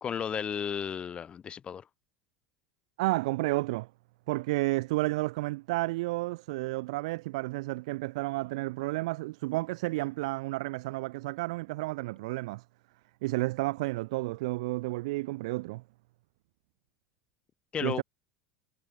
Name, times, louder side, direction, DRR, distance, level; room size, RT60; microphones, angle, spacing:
voice 1, 0.0-1.8 17.7-18.0, left 8 dB, 25° left, 0.6 m, -33 dB
voice 2, 3.0-3.9 4.3-12.6 13.2-15.8 17.8-18.0, right 21 dB, 55° right, 0.3 m, -31 dB
figure-of-eight pair, 75°, 4 cm